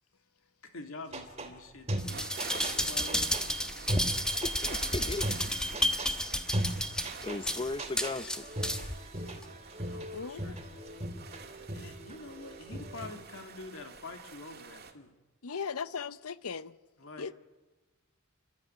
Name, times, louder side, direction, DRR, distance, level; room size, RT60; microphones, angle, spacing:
voice 1, 0.7-3.6 9.9-10.6 11.7-15.1 17.0-17.3, left 2 dB, 60° left, 2.6 m, -47 dB
sound 1, 1.1-1.5 1.9-3.5 3.9-4.8 5.1-6.1 6.5-7.5 7.8-13.1, right 1 dB, 30° right, 2.8 m, -37 dB
sound 2, 2.0-9.0 9.4-9.5, left 1 dB, 5° left, 1.2 m, -32 dB
sound 3, 2.1-14.9, right 6 dB, 45° right, 2.2 m, -47 dB
voice 2, 4.4-5.6 7.2-8.4, left 3 dB, 25° left, 0.6 m, -37 dB
voice 3, 10.1-10.7 15.4-16.8 17.2-17.3, left 5 dB, 80° left, 0.8 m, -38 dB
29.5 x 13.0 x 9.6 m
head